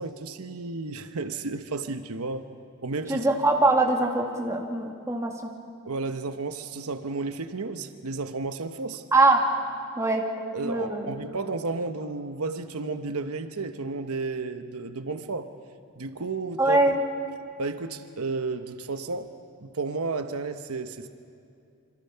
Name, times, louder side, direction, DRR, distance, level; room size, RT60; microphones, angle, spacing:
voice 1, 0.0-2.5 2.8-3.3 5.9-9.0 10.5-15.5 16.0-16.8 17.6-19.3 19.6-21.1, right 3 dB, 85° right, 8 dB, 1.0 m, -32 dB
voice 2, 3.1-5.3 9.1-9.5 10.0-10.2 10.6-11.1 16.6-17.0, right 2 dB, 15° right, 0 dB, 2.2 m, -22 dB
27.0 x 25.5 x 5.7 m, 2.5 s
head